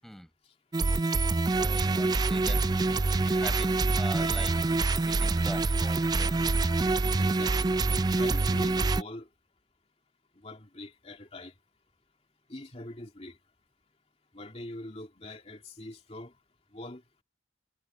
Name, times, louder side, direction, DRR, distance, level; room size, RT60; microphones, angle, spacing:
sound 1, 0.7-9.0, right 3 dB, 20° right, 0.3 m, -26 dB
voice 1, 1.5-2.7 3.2-4.7 5.0-6.4, equal, ahead, 5.8 m, -43 dB
voice 2, 7.2-7.8 8.1-9.3 10.3-11.5 12.5-13.4 14.3-16.3 16.7-17.0, left 1 dB, 35° left, 2.7 m, -43 dB
head